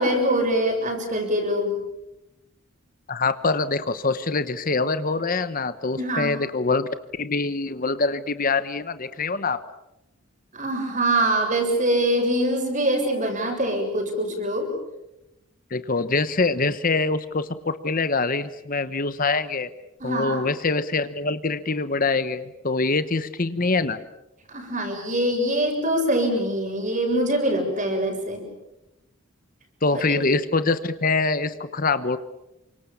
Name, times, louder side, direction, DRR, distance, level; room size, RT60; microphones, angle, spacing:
voice 1, 0.0-1.8 6.0-6.3 10.5-14.7 20.0-20.5 24.5-28.5, right 1 dB, 35° right, 3 dB, 7.0 m, -24 dB
voice 2, 3.1-6.9 7.2-9.6 15.7-19.7 20.0-24.0 29.8-32.2, left 3 dB, 40° left, 13 dB, 1.0 m, -24 dB
29.0 x 25.5 x 7.2 m, 0.91 s
head